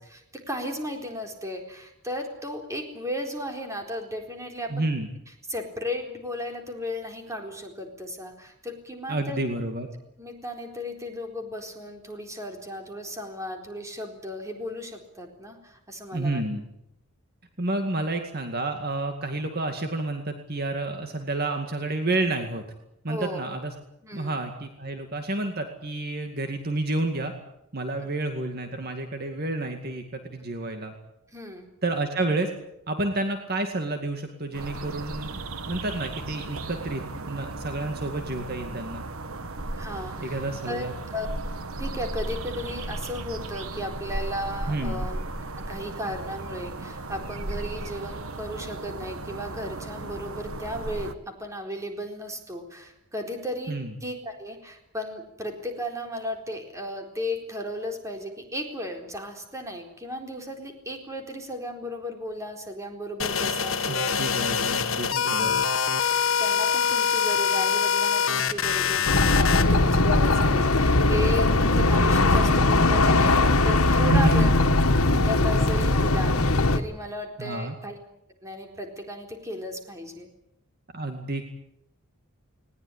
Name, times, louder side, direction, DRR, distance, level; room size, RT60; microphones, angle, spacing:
voice 1, 0.1-4.9 5.5-9.4 10.2-16.4 23.1-23.4 24.0-24.4 31.3-31.7 39.8-40.4 40.7-41.3 41.8-45.2 45.7-64.5 66.4-74.5 75.2-77.9 78.4-80.3, equal, 15° right, 3 dB, 4.1 m, -35 dB
voice 2, 4.7-5.1 9.1-9.9 16.1-16.7 17.6-22.6 23.0-23.7 24.1-27.3 27.7-30.9 31.8-32.5 32.9-35.4 35.6-39.0 40.2-40.9 44.7-45.1 53.7-53.9 63.9-65.6 74.1-74.5 77.4-77.7 80.9-81.5, right 2 dB, 45° right, 5 dB, 2.2 m, -30 dB
sound 1, 34.5-51.1, right 2 dB, 80° right, 1.4 m, -35 dB
sound 2, 63.2-69.6, left 7 dB, 65° left, 1.5 m, -24 dB
sound 3, 69.1-76.8, left 2 dB, 85° left, 1.8 m, -20 dB
20.5 x 19.5 x 10.0 m, 0.81 s
head